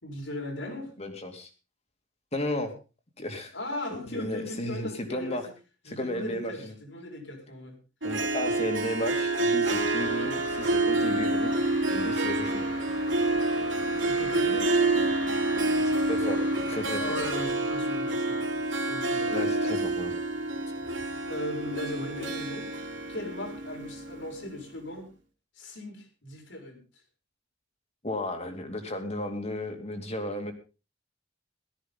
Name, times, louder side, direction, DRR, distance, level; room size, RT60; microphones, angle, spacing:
voice 1, 0.0-0.9 3.5-5.4 5.8-7.8 14.0-14.7 17.0-19.5 21.3-22.7 23.1-25.1 25.5-26.8, left 1 dB, 75° left, 3 dB, 4.8 m, -38 dB
voice 2, 1.0-1.5 2.3-2.7 3.2-3.5 4.1-5.5 5.8-6.7 8.0-11.5 11.9-12.7 16.1-17.2 19.3-20.1 28.0-30.5, left 1 dB, 35° left, 5 dB, 2.7 m, -34 dB
Harp, 8.0-24.5, right 2 dB, 75° right, 3.4 m, -28 dB
sound 1, 9.6-17.4, left 2 dB, 90° left, 6.7 m, -42 dB
18.0 x 13.5 x 3.7 m, 0.32 s
head